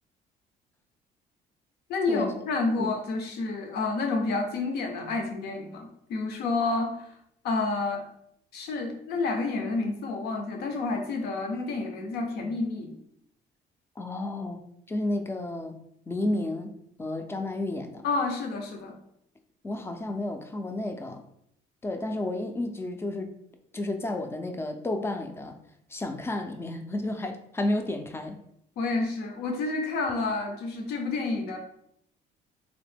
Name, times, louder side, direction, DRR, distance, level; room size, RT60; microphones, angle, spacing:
voice 1, 1.9-7.1 7.4-8.0 8.5-13.0 18.0-19.0 28.8-31.6, left 3 dB, 70° left, 4 dB, 0.6 m, -29 dB
voice 2, 14.0-14.6 14.9-15.8 16.1-18.0 19.6-21.2 21.8-23.3 23.7-25.6 25.9-28.4, left 1 dB, 15° left, 6 dB, 0.3 m, -31 dB
2.9 x 2.0 x 3.3 m, 0.73 s
cardioid pair, 110°, 17 cm